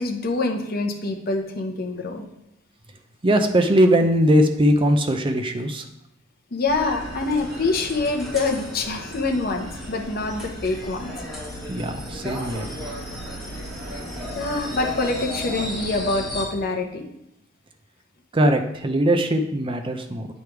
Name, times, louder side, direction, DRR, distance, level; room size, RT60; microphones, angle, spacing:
voice 1, 0.0-2.2 6.5-11.1 14.3-17.0, left 3 dB, 50° left, 3 dB, 0.9 m, -25 dB
voice 2, 3.2-5.9 11.7-12.7 18.3-20.3, equal, 25° right, 6 dB, 0.5 m, -20 dB
sound 1, 6.7-16.4, equal, ahead, 1.8 m, -34 dB
8.7 x 3.4 x 4.6 m, 0.82 s
head